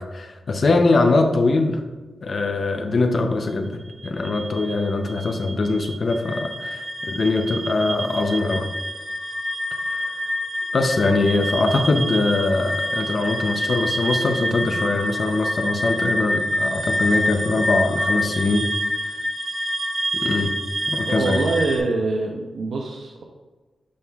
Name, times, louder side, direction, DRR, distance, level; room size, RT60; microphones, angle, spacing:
voice 1, 0.0-1.8 2.2-8.7 9.9-10.1 10.7-18.7 19.0-19.1 20.1-20.5 20.9-21.4, left 3 dB, 40° left, 5 dB, 0.6 m, -22 dB
sound 1, 3.9-21.8, equal, 35° right, 1.2 m, -27 dB
voice 2, 21.1-23.2, right 3 dB, 75° right, 0 dB, 0.7 m, -24 dB
8.6 x 5.5 x 2.4 m, 1.2 s
wide cardioid pair, 180°, 0 cm